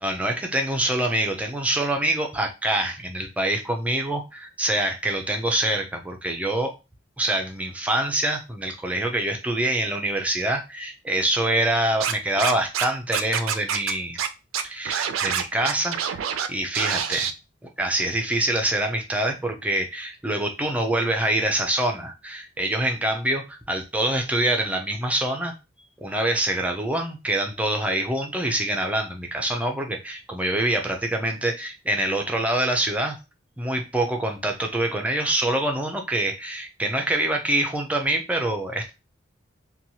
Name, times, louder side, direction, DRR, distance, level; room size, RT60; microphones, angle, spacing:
voice 1, 0.0-6.7 7.2-14.2 14.6-17.3 17.8-25.5 26.0-33.2 33.6-38.9, right 1 dB, 5° right, 3 dB, 0.4 m, -25 dB
Scratching (performance technique), 12.0-12.8 13.1-13.9 14.2-14.3 14.5-16.5 16.7-17.3, right 8 dB, 85° right, 0.4 m, -26 dB
2.8 x 2.2 x 2.8 m, 0.27 s
head